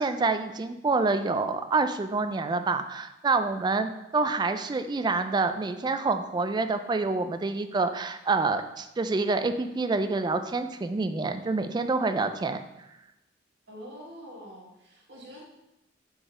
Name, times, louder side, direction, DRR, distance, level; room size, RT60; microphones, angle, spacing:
voice 1, 0.0-12.6, right 3 dB, 25° right, 9 dB, 0.3 m, -27 dB
voice 2, 13.7-15.4, equal, 65° right, -4 dB, 1.5 m, -45 dB
5.0 x 4.0 x 4.8 m, 0.90 s
head